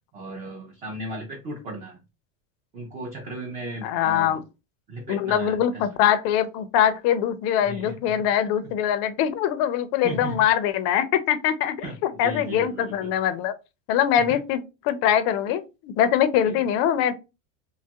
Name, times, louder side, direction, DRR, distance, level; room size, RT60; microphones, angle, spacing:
voice 1, 0.1-2.0 2.7-4.4 4.9-5.9 7.7-8.2 10.0-10.4 11.8-12.0 12.2-13.1 14.3-14.4 16.4-16.6, right 1 dB, 20° right, 1 dB, 0.4 m, -36 dB
voice 2, 3.8-4.4 5.1-13.5 13.9-17.1, left 10 dB, 45° left, 12 dB, 0.4 m, -23 dB
2.9 x 2.3 x 2.7 m, 0.27 s
supercardioid pair, 150°, 38 cm